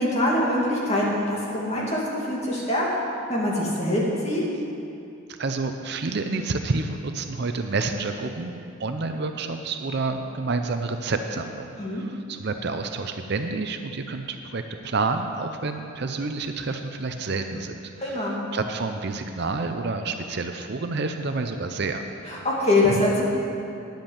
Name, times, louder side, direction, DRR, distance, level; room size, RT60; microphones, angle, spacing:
voice 1, 0.0-2.0 2.3-2.8 3.3-4.4 11.8-12.0 18.0-18.4 22.2-23.2, left 1 dB, 30° left, -5 dB, 2.2 m, -23 dB
voice 2, 5.3-18.2 18.5-22.0, right 3 dB, 50° right, 6 dB, 0.6 m, -29 dB
10.5 x 8.0 x 7.3 m, 2.6 s
head